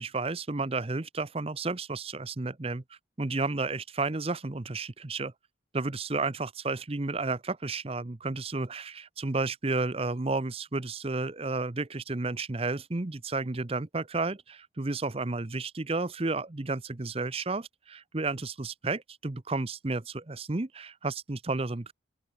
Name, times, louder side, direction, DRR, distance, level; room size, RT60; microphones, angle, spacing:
voice 1, 0.0-2.8 3.2-5.3 5.7-21.9, right 3 dB, 30° right, 0.7 m, -32 dB
open air
head